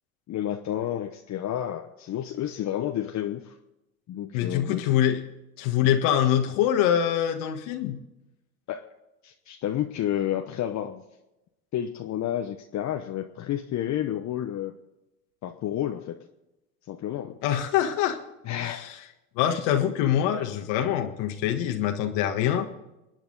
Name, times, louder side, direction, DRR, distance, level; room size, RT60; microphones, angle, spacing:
voice 1, 0.3-3.5 4.1-4.8 8.7-8.8 9.2-11.0 11.7-14.8 15.4-16.2 16.9-17.4 18.4-18.9, left 11 dB, 40° left, 5 dB, 1.0 m, -30 dB
voice 2, 4.3-5.2 5.6-8.0 17.4-18.2 18.6-18.9 19.4-22.7, left 10 dB, 65° left, 4 dB, 1.6 m, -24 dB
26.5 x 9.3 x 3.9 m, 0.97 s
hypercardioid pair, 90°, 42 cm